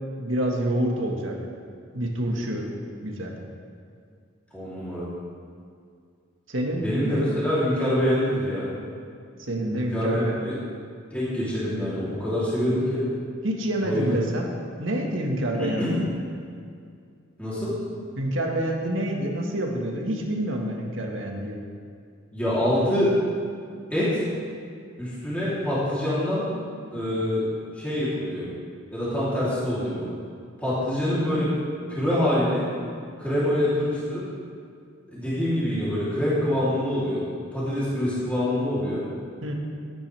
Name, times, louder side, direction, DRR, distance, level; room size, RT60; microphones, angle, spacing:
voice 1, 0.2-1.4 1.9-2.7 3.0-3.4 6.5-7.2 9.4-10.5 13.4-14.5 14.8-16.0 18.2-21.6 39.4-39.5, right 1 dB, 75° right, 0 dB, 1.7 m, -27 dB
voice 2, 4.5-5.0 6.8-8.7 9.7-10.5 11.1-13.1 13.8-14.1 15.6-16.0 17.4-17.8 22.3-23.1 23.9-24.2 25.0-26.5 26.9-27.4 27.7-28.4 28.9-30.1 30.6-31.5 31.9-32.7 33.2-34.2 35.1-37.2 37.5-39.0, left 1 dB, 5° left, -11 dB, 3.2 m, -25 dB
17.5 x 9.6 x 3.5 m, 2.3 s
head